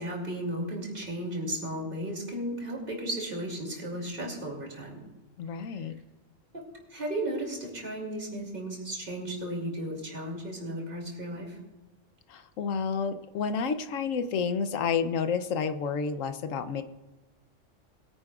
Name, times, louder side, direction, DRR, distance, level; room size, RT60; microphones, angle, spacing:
voice 1, 0.0-5.0 6.9-11.6, right 1 dB, 45° right, -1 dB, 2.9 m, -34 dB
voice 2, 5.4-6.0 12.3-16.8, left 6 dB, 90° left, 10 dB, 1.1 m, -30 dB
21.5 x 9.8 x 2.4 m, 1.1 s
omnidirectional pair, 1.3 m